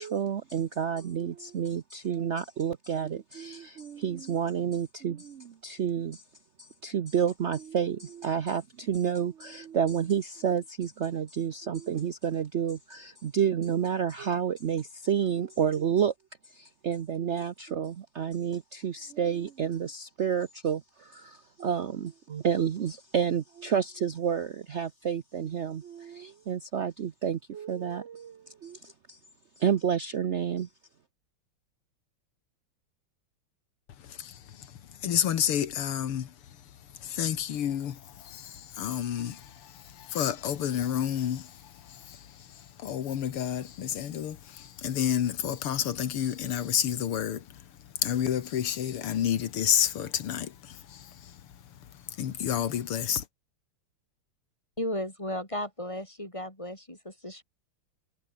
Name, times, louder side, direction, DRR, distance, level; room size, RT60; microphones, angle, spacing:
voice 1, 0.0-6.2 6.6-16.1 16.5-29.2 29.6-30.7, right 8 dB, 70° right, 0.6 m, -30 dB
voice 2, 35.0-36.3 37.0-41.5 41.9-42.2 42.8-47.4 48.0-51.1 52.2-53.2, left 9 dB, 90° left, 2.4 m, -30 dB
voice 3, 54.8-57.4, left 1 dB, 15° left, 7.1 m, -35 dB
omnidirectional pair, 2.4 m